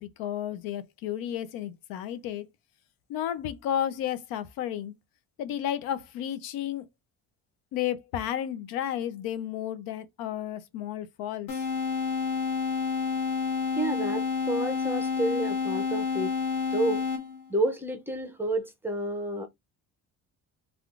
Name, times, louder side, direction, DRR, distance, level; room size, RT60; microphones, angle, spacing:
voice 1, 0.0-2.5 3.1-4.9 5.4-6.8 7.7-11.5, left 10 dB, 80° left, 0.6 m, -32 dB
sound 1, 11.5-17.5, left 5 dB, 60° left, 1.5 m, -29 dB
voice 2, 13.8-16.3 16.7-17.1 17.5-19.5, right 1 dB, 5° right, 0.5 m, -30 dB
3.5 x 2.3 x 2.4 m
cardioid pair, 155°, 35 cm